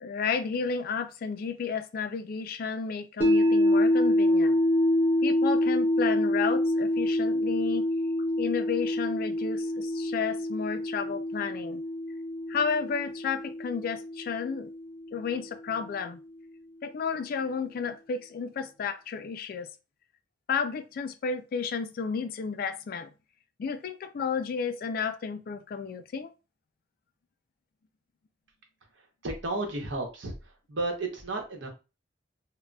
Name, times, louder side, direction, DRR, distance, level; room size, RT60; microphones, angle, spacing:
voice 1, 0.0-4.6 5.2-7.9 8.4-11.8 12.5-14.7 15.1-16.2 16.8-19.7 20.5-23.1 23.6-26.3, left 5 dB, 50° left, 0.3 m, -32 dB
sound 1, 3.2-15.3, left 1 dB, 10° right, 0.8 m, -26 dB
voice 2, 29.0-31.7, right 2 dB, 80° right, 0.8 m, -33 dB
3.8 x 2.1 x 2.2 m
head